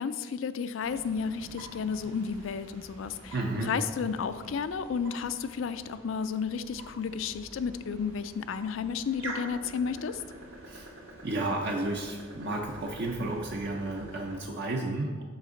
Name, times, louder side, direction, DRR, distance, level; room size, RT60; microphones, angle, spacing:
voice 1, 0.0-3.3 3.7-10.2, left 6 dB, 85° left, 13 dB, 0.4 m, -32 dB
sound 1, 0.8-14.4, right 1 dB, 75° right, 1.6 m, -47 dB
voice 2, 3.3-3.7 10.6-10.9 11.2-15.2, right 2 dB, 55° right, 1 dB, 0.5 m, -32 dB
6.2 x 5.8 x 3.8 m, 1.5 s
head